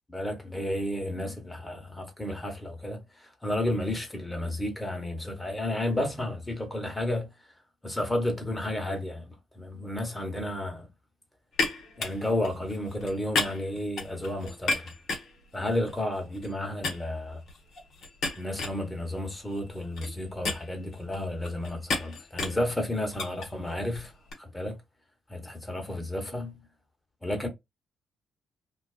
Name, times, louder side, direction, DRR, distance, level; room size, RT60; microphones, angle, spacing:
voice 1, 0.1-7.3 7.8-10.9 12.0-14.9 15.5-17.4 18.4-24.1 24.4-24.8 25.3-26.6 27.2-27.5, left 1 dB, 15° left, 1.1 m, -32 dB
sound 1, 11.5-16.5 16.8-24.3, left 3 dB, 65° left, 0.9 m, -35 dB
2.4 x 2.2 x 2.3 m
hypercardioid pair, 40°, 0 cm